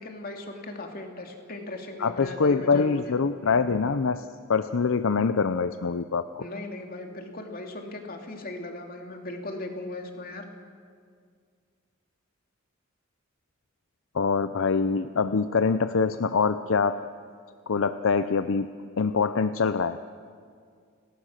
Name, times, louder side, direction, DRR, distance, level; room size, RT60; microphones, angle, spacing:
voice 1, 0.0-3.1 6.4-10.4, left 2 dB, 45° left, 3 dB, 2.7 m, -38 dB
voice 2, 2.0-6.2 14.1-17.0 17.7-18.7 19.0-20.0, left 5 dB, 70° left, 11 dB, 0.6 m, -24 dB
30.0 x 19.0 x 6.6 m, 2.1 s
head